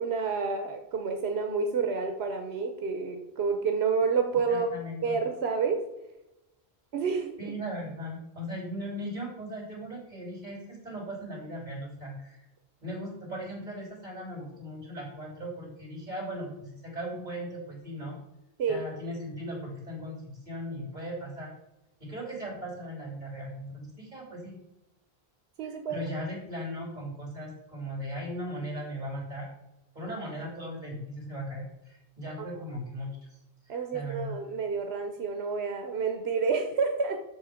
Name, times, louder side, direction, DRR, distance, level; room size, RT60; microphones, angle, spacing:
voice 1, 0.0-4.7 5.0-5.9 6.9-7.3 18.6-18.8 25.6-26.0 33.7-37.2, right 5 dB, 90° right, 5 dB, 1.1 m, -29 dB
voice 2, 4.5-5.2 7.4-12.4 12.8-18.2 18.7-21.5 22.0-24.5 25.6-29.5 29.9-33.4 33.7-34.3, equal, 45° right, -1 dB, 3.5 m, -38 dB
7.4 x 6.7 x 5.0 m, 0.93 s
omnidirectional pair, 1.0 m